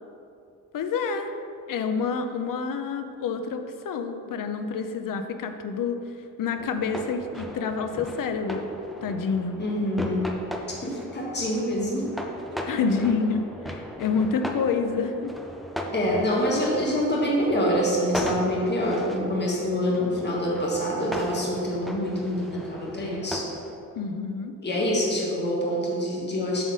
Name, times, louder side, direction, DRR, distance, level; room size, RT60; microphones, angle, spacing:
voice 1, 0.7-1.3 1.7-6.0 6.4-8.7 9.0-9.6 12.7-15.3 23.9-24.5, left 5 dB, 75° left, 7 dB, 0.7 m, -28 dB
sound 1, 6.6-23.8, equal, ahead, 0.4 m, -37 dB
voice 2, 9.6-10.3 10.7-12.1 12.5-12.6 15.9-23.5 24.6-26.6, equal, 30° left, -3 dB, 1.5 m, -26 dB
7.6 x 4.0 x 6.2 m, 2.6 s
wide cardioid pair, 175°, 33 cm